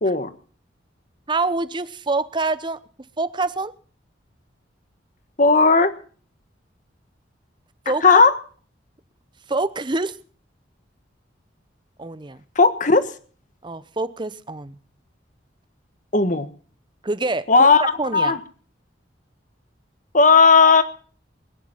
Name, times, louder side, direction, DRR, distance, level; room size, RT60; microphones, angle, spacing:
voice 1, 0.0-0.3 5.4-5.9 8.0-8.3 12.5-13.1 16.1-16.5 17.5-17.8 18.1-18.4 20.1-20.8, left 4 dB, 45° left, 12 dB, 1.5 m, -14 dB
voice 2, 1.3-2.8 3.2-3.7 7.9-8.2 9.5-10.2 12.0-12.4 13.6-14.8 17.0-17.7 18.0-18.3, right 3 dB, 25° right, 15 dB, 0.8 m, -26 dB
21.5 x 10.5 x 5.8 m, 0.42 s
head